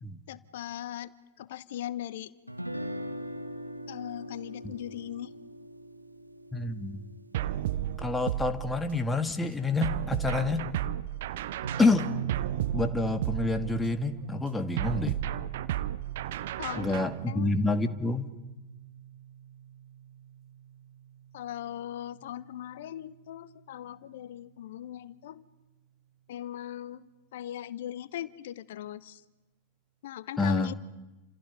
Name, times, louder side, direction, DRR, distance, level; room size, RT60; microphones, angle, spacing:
voice 1, 0.3-2.3 3.9-5.3 16.6-17.0 17.3-17.5 21.3-25.4 26.3-29.2 30.0-30.7, left 12 dB, 55° left, 18 dB, 1.0 m, -39 dB
Guitar, 2.5-8.6, equal, 90° right, 1.7 m, -41 dB
voice 2, 6.5-7.0 8.0-10.7 11.8-12.1 12.7-15.2 16.7-18.3 30.4-30.7, left 3 dB, 10° left, 8 dB, 1.7 m, -28 dB
sound 1, 7.3-9.1 9.8-14.0 14.8-17.2, right 12 dB, 55° right, 0.9 m, -33 dB
sound 2, 11.6-24.5, right 8 dB, 70° right, 1.7 m, -43 dB
29.0 x 27.5 x 5.3 m, 1.1 s
figure-of-eight pair, 90°, 0 cm